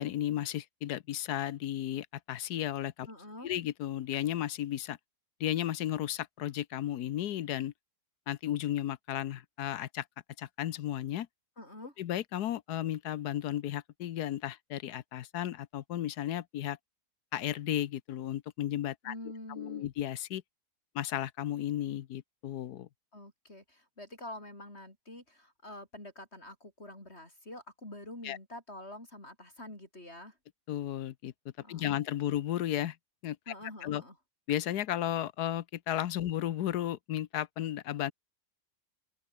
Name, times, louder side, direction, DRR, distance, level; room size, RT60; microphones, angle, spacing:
voice 1, 0.0-3.1 3.4-5.0 5.4-7.7 8.3-10.0 10.4-11.3 12.0-16.8 17.3-19.1 19.6-20.4 20.9-22.9 28.2-28.4 30.7-31.3 31.7-33.0 33.2-33.4 33.8-34.0 34.5-38.1, left 12 dB, 90° left, 1.4 m, -34 dB
voice 2, 3.1-3.5 11.6-12.0 19.0-19.8 23.1-30.4 31.6-32.0 33.5-34.2, left 1 dB, 40° left, 6.5 m, -46 dB
omnidirectional pair, 1.6 m